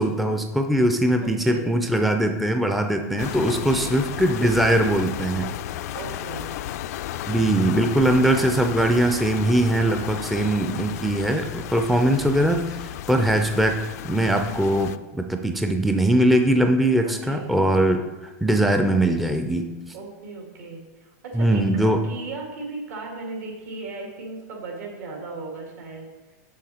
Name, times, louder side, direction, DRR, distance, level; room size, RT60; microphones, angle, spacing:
voice 1, 0.0-5.5 7.3-13.8 14.0-19.7 21.3-22.0, right 1 dB, ahead, 5 dB, 0.4 m, -21 dB
voice 2, 1.2-1.6 3.6-3.9 5.9-6.5 17.0-17.5 19.9-26.4, right 3 dB, 75° right, 0 dB, 2.2 m, -36 dB
sound 1, 3.2-15.0, left 11 dB, 70° left, 0.4 m, -33 dB
6.6 x 6.4 x 4.3 m, 1.1 s
supercardioid pair, 140°, 9 cm